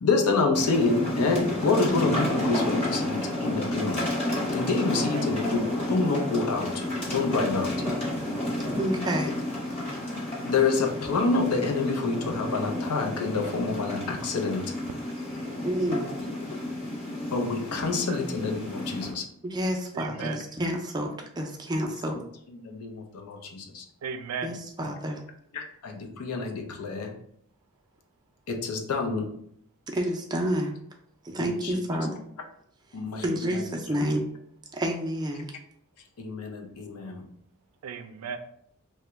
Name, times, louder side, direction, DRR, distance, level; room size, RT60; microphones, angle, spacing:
voice 1, 0.0-4.0 4.5-6.8 7.1-7.7 9.9-10.0 10.4-14.8 17.3-19.3 22.1-22.2 22.6-23.9 25.5-27.2 28.5-29.3 31.4-31.8 32.9-33.2 36.2-37.3, left 4 dB, 80° left, 3 dB, 0.5 m, -27 dB
sound 1, 0.5-19.1, left 1 dB, 25° left, 0.9 m, -31 dB
voice 2, 8.8-9.3 15.6-16.1 19.4-22.2 24.4-25.2 29.9-30.7 31.2-32.1 33.2-34.3 34.7-35.5, equal, 20° right, 1 dB, 0.4 m, -29 dB
voice 3, 19.9-20.4 24.0-24.6 33.5-33.6 37.8-38.4, right 6 dB, 90° right, 8 dB, 0.4 m, -36 dB
2.9 x 2.2 x 3.4 m, 0.68 s
head